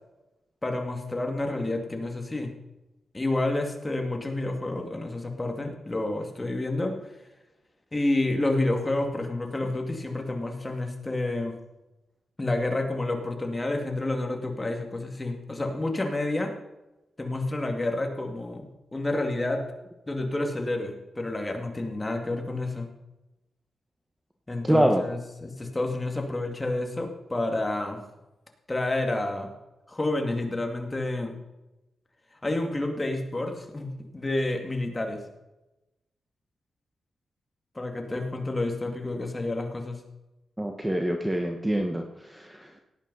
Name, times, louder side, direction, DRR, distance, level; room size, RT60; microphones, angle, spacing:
voice 1, 0.6-2.5 3.1-6.9 7.9-11.6 12.4-16.5 17.2-19.6 20.1-22.9 24.5-28.0 28.7-29.5 29.9-31.4 32.4-35.2 37.8-40.0, left 2 dB, 15° left, 3 dB, 2.2 m, -29 dB
voice 2, 24.6-25.0 40.6-42.7, right 1 dB, 10° right, 3 dB, 1.1 m, -25 dB
17.5 x 9.2 x 5.5 m, 0.98 s
wide cardioid pair, 135°, 0 cm